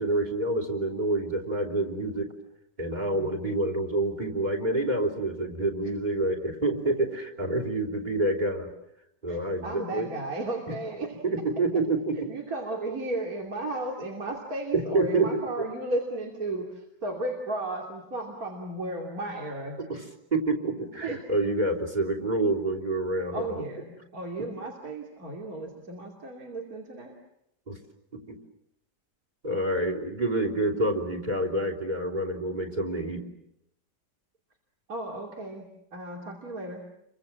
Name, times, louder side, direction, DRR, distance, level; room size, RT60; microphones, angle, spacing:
voice 1, 0.0-2.3 2.8-8.7 9.2-10.1 10.7-10.8 11.2-12.2 14.7-15.7 19.9-20.0 20.3-23.6 27.7-27.8 28.3-28.4 29.4-33.3, right 2 dB, 25° right, 5 dB, 3.4 m, -27 dB
voice 2, 9.3-11.2 12.3-19.8 21.0-21.2 23.3-27.2 34.9-36.8, right 2 dB, 55° right, 0 dB, 3.3 m, -34 dB
29.5 x 24.5 x 7.5 m, 0.79 s
omnidirectional pair, 1.8 m